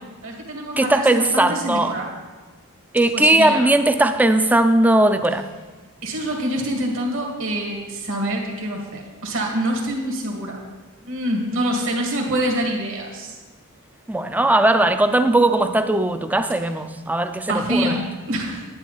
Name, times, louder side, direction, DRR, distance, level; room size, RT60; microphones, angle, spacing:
voice 1, 0.2-2.1 3.1-3.7 6.0-10.6 11.0-13.4 17.5-18.6, right 1 dB, 65° right, 1 dB, 2.2 m, -25 dB
voice 2, 0.8-1.9 2.9-5.5 14.1-17.9, right 1 dB, 10° right, 9 dB, 0.5 m, -18 dB
10.5 x 10.0 x 4.1 m, 1.3 s
head